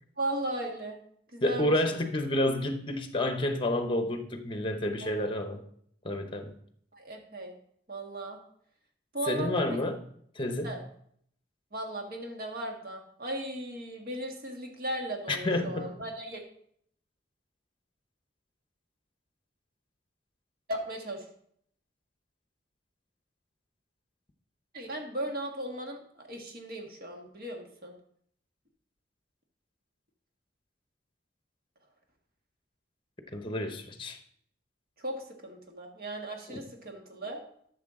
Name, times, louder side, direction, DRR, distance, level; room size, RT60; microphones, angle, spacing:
voice 1, 0.2-1.0 1.3-2.0 5.0-5.3 6.9-7.5 7.9-8.4 9.1-9.8 10.6-10.8 11.7-16.4 20.7-21.2 24.7-28.0 35.0-37.4, right 1 dB, 50° right, 1 dB, 1.6 m, -37 dB
voice 2, 1.4-5.6 6.0-6.5 9.3-10.0 10.4-10.7 15.3-15.9 33.3-34.2 36.5-36.6, left 1 dB, 25° left, 7 dB, 0.9 m, -29 dB
12.5 x 6.5 x 3.7 m, 0.65 s
head